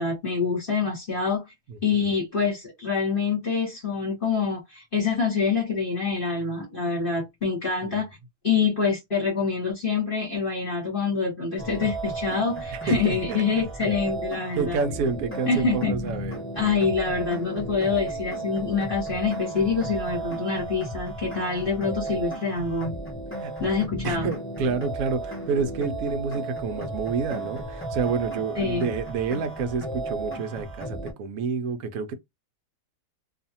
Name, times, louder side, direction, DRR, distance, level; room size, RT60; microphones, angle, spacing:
voice 1, 0.0-1.5 1.8-8.1 8.4-14.8 15.4-15.9 16.6-23.0 23.6-24.3 28.6-28.9, left 5 dB, 40° left, 1.1 m, -26 dB
voice 2, 1.7-2.1 7.8-8.0 12.7-13.4 14.5-16.5 23.4-23.5 24.0-32.1, right 5 dB, 70° right, 0.9 m, -29 dB
sound 1, 11.6-31.1, right 2 dB, 15° left, 0.5 m, -34 dB
2.6 x 2.4 x 2.7 m
omnidirectional pair, 1.7 m